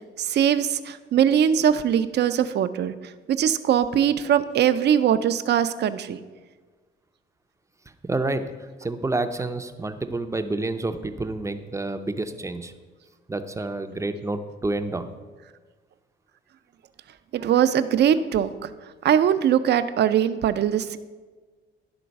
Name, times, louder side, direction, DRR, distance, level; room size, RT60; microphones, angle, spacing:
voice 1, 0.2-2.9 3.3-6.2 17.3-18.7 19.0-21.0, right 9 dB, 60° right, 12 dB, 0.5 m, -21 dB
voice 2, 8.0-8.4 8.8-12.7 13.3-15.1, right 2 dB, 15° right, 8 dB, 0.5 m, -28 dB
11.0 x 3.8 x 5.2 m, 1.4 s
cardioid pair, 90°, 20 cm